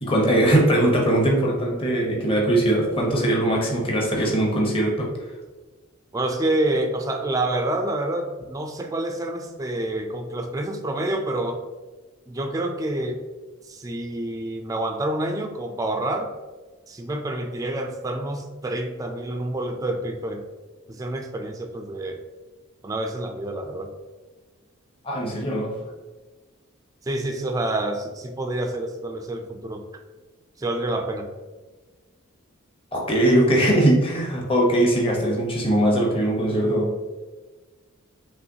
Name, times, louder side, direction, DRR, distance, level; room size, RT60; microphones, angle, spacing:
voice 1, 0.0-5.1 25.0-25.7 32.9-36.9, right 1 dB, 25° left, -1 dB, 0.9 m, -20 dB
voice 2, 6.1-11.6 12.3-13.2 13.6-16.3 16.9-20.4 20.9-22.2 22.8-23.9 27.0-29.8 30.6-31.3, right 1 dB, 15° right, 4 dB, 0.3 m, -28 dB
5.6 x 3.0 x 2.7 m, 1.3 s
head